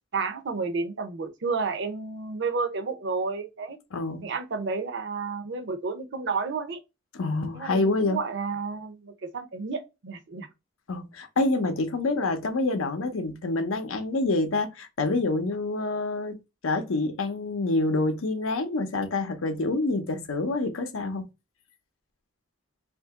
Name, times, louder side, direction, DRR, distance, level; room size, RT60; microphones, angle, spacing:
voice 1, 0.1-3.8 4.2-6.8 7.5-10.5, right 4 dB, 55° right, 0.6 m, -31 dB
voice 2, 3.9-4.3 7.1-8.2 10.9-16.3 16.6-21.2, left 2 dB, 80° left, 0.7 m, -27 dB
2.8 x 2.5 x 3.5 m
head